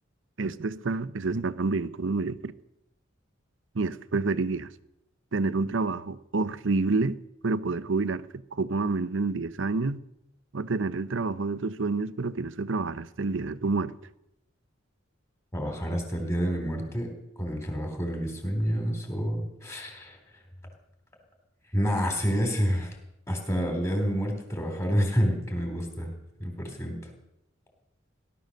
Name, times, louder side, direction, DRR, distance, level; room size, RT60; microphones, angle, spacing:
voice 1, 0.4-2.5 3.7-4.7 5.3-8.3 8.5-10.0 10.5-13.9, right 3 dB, 65° right, 0.7 m, -28 dB
voice 2, 15.5-20.2 21.7-22.9 23.3-26.1 26.4-27.0, equal, 15° left, 3.5 m, -28 dB
18.0 x 12.0 x 6.6 m
head